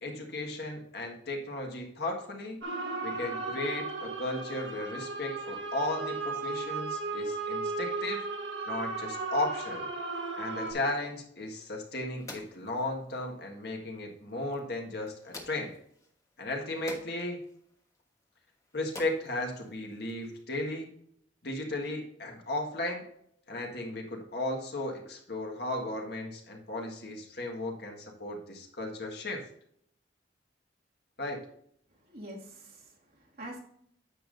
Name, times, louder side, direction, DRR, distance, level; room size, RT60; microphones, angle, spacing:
voice 1, 0.0-2.6 3.0-8.3 8.7-9.9 10.4-15.7 16.4-17.4 18.7-20.9 21.4-23.0 23.5-29.4 31.2-31.4, left 1 dB, 60° left, 1 dB, 1.7 m, -35 dB
sound 1, 2.6-10.7, right 3 dB, 70° right, 1.5 m, -35 dB
sound 2, 11.4-20.4, left 2 dB, 15° left, 1.2 m, -51 dB
voice 2, 32.0-33.6, right 1 dB, 55° right, -2 dB, 2.2 m, -45 dB
9.8 x 7.3 x 2.6 m, 0.69 s
head